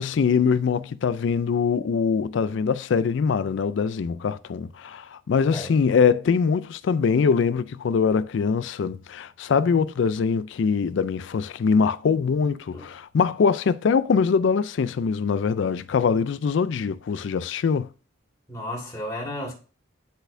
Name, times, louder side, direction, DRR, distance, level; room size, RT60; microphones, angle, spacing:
voice 1, 0.0-17.9, left 5 dB, 65° left, 0.3 m, -23 dB
voice 2, 18.5-19.5, left 1 dB, 15° left, 2.0 m, -33 dB
10.5 x 4.1 x 2.6 m
head